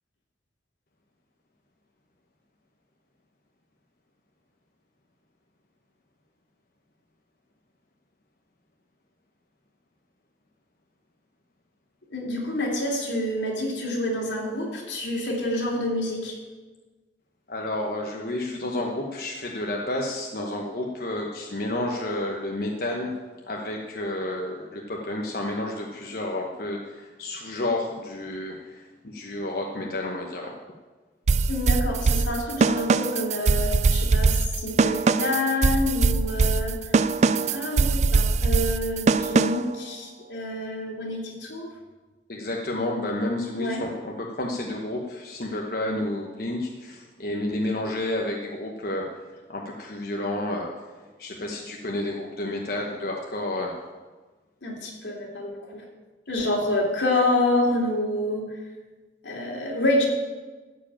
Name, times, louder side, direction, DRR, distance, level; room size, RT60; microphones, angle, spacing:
voice 1, 12.1-16.3 31.5-36.8 37.5-41.7 43.5-43.9 54.6-55.8 56.3-58.4 59.2-60.1, left 1 dB, 85° left, -1 dB, 2.9 m, -27 dB
voice 2, 17.5-23.1 23.5-30.5 42.3-49.1 49.5-50.7 51.2-53.7, left 1 dB, 55° left, 0 dB, 1.1 m, -30 dB
sound 1, 31.3-39.8, right 4 dB, 40° right, 0.3 m, -22 dB
13.5 x 5.1 x 8.7 m, 1.3 s
head